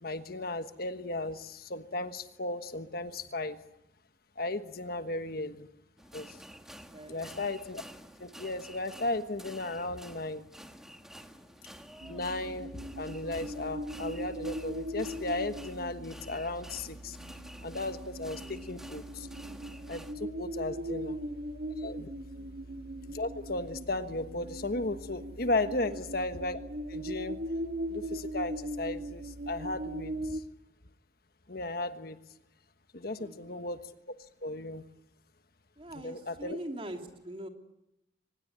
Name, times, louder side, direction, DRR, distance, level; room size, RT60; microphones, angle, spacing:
voice 1, 0.0-3.6 4.4-5.7 6.1-6.4 7.1-7.8 8.2-10.4 12.1-17.2 17.6-19.3 19.9-21.2 21.8-22.1 23.1-26.6 26.9-27.4 27.9-30.4 31.5-32.2 32.9-33.9 34.4-34.8 36.0-36.6, left 2 dB, 55° left, 10 dB, 1.3 m, -35 dB
sound 1, 6.0-20.1, equal, 5° right, 1.7 m, -50 dB
voice 2, 6.9-7.3 18.4-18.7 20.8-21.4 22.3-22.5 25.8-26.0 30.2-30.3 33.2-33.7 35.8-37.5, right 1 dB, 30° right, 4 dB, 2.9 m, -44 dB
sound 2, 12.0-30.4, right 1 dB, 60° right, 1.8 m, -39 dB
24.5 x 20.5 x 9.5 m, 0.89 s
head